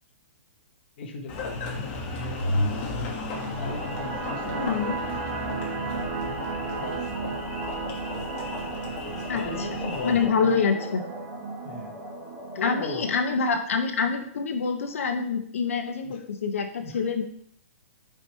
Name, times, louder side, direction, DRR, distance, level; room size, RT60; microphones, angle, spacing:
voice 1, 1.0-1.9 3.6-5.6 9.4-10.6 11.6-12.0 12.5-13.1 16.0-16.2 16.8-17.1, left 3 dB, 50° left, 3 dB, 1.5 m, -37 dB
Engine, 1.3-10.3, left 2 dB, 30° left, 1.4 m, -33 dB
sound 1, 3.2-13.2, left 1 dB, 5° right, 2.2 m, -40 dB
sound 2, 3.3-14.2, right 5 dB, 50° right, 0.9 m, -36 dB
voice 2, 4.5-4.9 9.3-9.4 10.0-11.0 12.6-17.2, left 5 dB, 70° left, 5 dB, 1.3 m, -26 dB
8.2 x 5.2 x 3.1 m, 0.63 s
hypercardioid pair, 160°, 8 cm